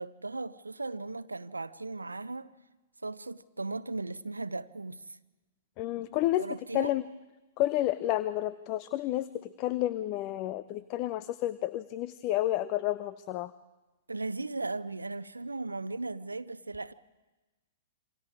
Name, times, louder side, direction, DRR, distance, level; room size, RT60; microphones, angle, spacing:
voice 1, 0.0-2.5 3.0-5.2 6.4-6.9 14.1-16.9, right 3 dB, 85° right, 0.7 m, -37 dB
voice 2, 5.8-7.0 7.6-13.5, left 14 dB, 40° left, 0.7 m, -30 dB
27.5 x 26.0 x 4.8 m
figure-of-eight pair, 110°, 0 cm